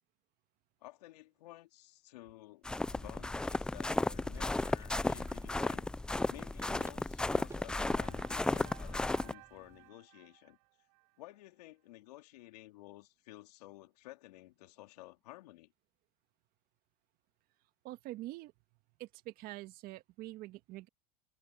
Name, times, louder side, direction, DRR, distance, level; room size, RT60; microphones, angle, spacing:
voice 1, 0.8-2.6 2.9-10.6 11.2-15.7, left 17 dB, 80° left, 3.2 m, -53 dB
sound 1, 2.6-9.3, left 2 dB, 5° left, 0.3 m, -34 dB
sound 2, 3.2-9.9, right 4 dB, 15° right, 2.8 m, -60 dB
sound 3, 7.7-11.2, right 28 dB, 65° right, 7.7 m, -58 dB
voice 2, 17.8-18.5 19.0-20.9, right 17 dB, 45° right, 1.7 m, -45 dB
supercardioid pair, 130°, 20 cm